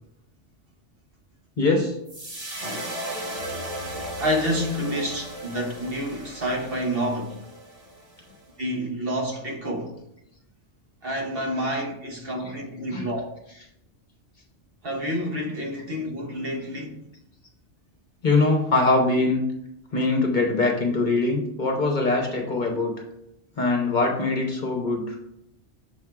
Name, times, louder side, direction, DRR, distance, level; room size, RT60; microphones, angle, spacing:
voice 1, 1.6-2.0 12.9-13.1 18.2-19.4 19.9-23.0 23.6-25.2, left 3 dB, 45° left, 1.0 m, -22 dB
sound 1, 2.1-8.4, right 1 dB, 35° right, 1.2 m, -36 dB
voice 2, 2.6-3.3 4.2-7.4 8.6-9.9 11.0-13.2 14.8-17.0, equal, 55° right, 1.3 m, -29 dB
6.6 x 3.6 x 4.6 m
omnidirectional pair, 1.2 m